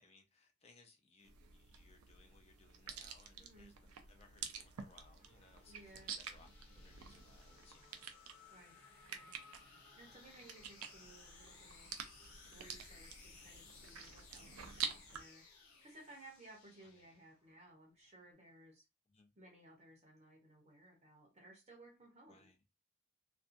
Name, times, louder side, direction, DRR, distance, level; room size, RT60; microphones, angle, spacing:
voice 1, 0.0-6.5 6.7-8.1 10.0-10.3 14.8-15.1 16.8-17.2 19.1-19.3 22.3-22.6, left 3 dB, 30° left, 0.5 m, -67 dB
sound 1, 1.2-15.2, right 7 dB, 90° right, 0.5 m, -49 dB
Race car auto racing / Accelerating revving vroom, 1.4-18.3, left 3 dB, 5° left, 0.9 m, -69 dB
voice 2, 3.4-3.7 5.7-6.1 8.5-8.8 9.1-9.4 10.0-11.9 12.5-15.4 15.8-18.8 19.4-22.5, right 1 dB, 30° right, 0.8 m, -60 dB
sound 2, 4.1-17.5, left 4 dB, 80° left, 0.8 m, -62 dB
2.5 x 2.3 x 2.5 m
head